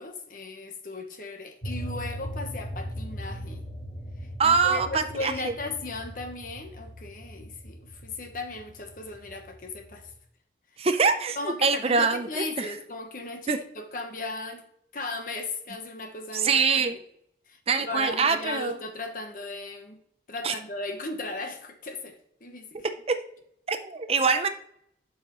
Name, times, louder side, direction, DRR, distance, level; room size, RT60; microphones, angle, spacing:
voice 1, 0.0-3.6 4.4-10.1 11.4-14.6 14.9-17.0 17.5-17.6 17.9-20.0 20.3-22.9, left 2 dB, 50° left, 1.0 m, -36 dB
sound 1, 1.6-10.1, equal, 65° left, 2.0 m, -39 dB
voice 2, 4.4-5.5 10.8-12.7 13.5-13.6 16.3-17.0 17.7-18.8 20.4-20.5 23.1-23.2 23.7-24.5, right 5 dB, 30° right, 0.5 m, -24 dB
11.5 x 5.4 x 3.0 m
head